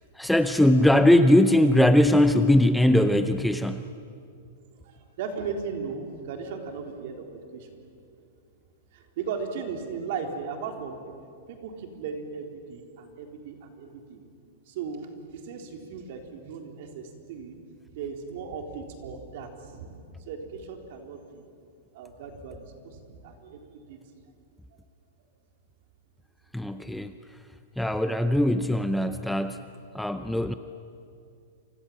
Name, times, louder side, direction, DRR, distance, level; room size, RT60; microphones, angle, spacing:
voice 1, 0.2-3.9 26.5-27.1 27.8-29.6 29.9-30.5, left 1 dB, ahead, 9 dB, 0.5 m, -20 dB
voice 2, 4.7-7.8 8.9-11.1 11.5-14.2 14.7-17.6 18.0-20.0 20.3-21.4 21.9-24.0 24.3-24.4, right 5 dB, 50° right, 3 dB, 3.7 m, -37 dB
29.5 x 25.5 x 7.5 m, 2.5 s
supercardioid pair, 170°, 0 cm